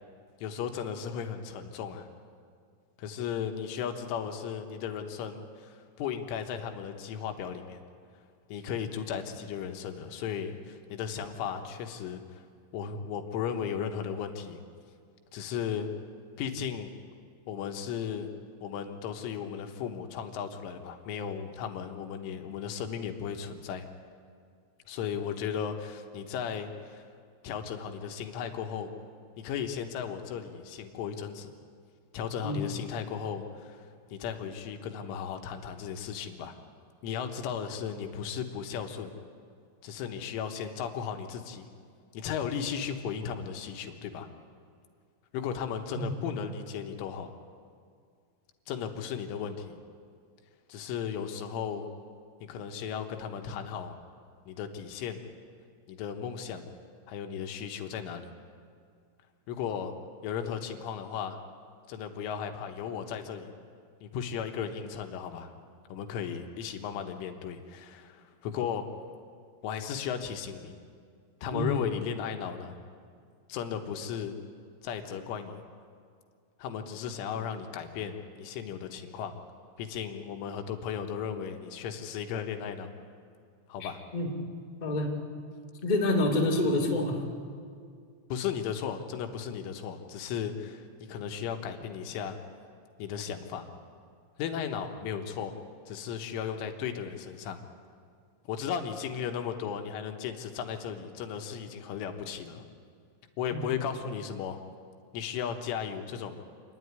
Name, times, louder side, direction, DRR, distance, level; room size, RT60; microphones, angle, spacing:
voice 1, 0.4-2.1 3.0-7.8 8.5-12.4 12.7-14.6 15.3-15.9 16.4-16.9 17.5-18.3 18.6-23.9 24.9-27.1 27.4-28.9 29.4-31.5 32.1-36.5 37.0-39.1 39.8-41.7 42.1-44.3 45.3-47.3 48.7-49.8 50.7-51.9 52.4-54.0 54.5-55.2 55.9-56.7 57.1-58.3 59.5-59.9 60.2-61.4 61.9-63.5 64.0-65.5 65.9-68.9 69.6-70.8 71.4-72.8 73.5-74.4 74.8-75.6 76.6-79.4 79.8-82.9 83.7-84.0 88.3-90.8 91.1-92.4 93.0-93.7 94.4-95.5 95.9-97.6 98.5-102.6 103.4-104.6 105.1-106.4, left 7 dB, 75° left, 5 dB, 3.4 m, -35 dB
voice 2, 83.8-84.3 84.8-85.1 85.8-87.2 103.5-103.6, left 1 dB, 40° left, -3 dB, 0.6 m, -27 dB
27.5 x 10.5 x 9.6 m, 2.2 s
omnidirectional pair, 5.9 m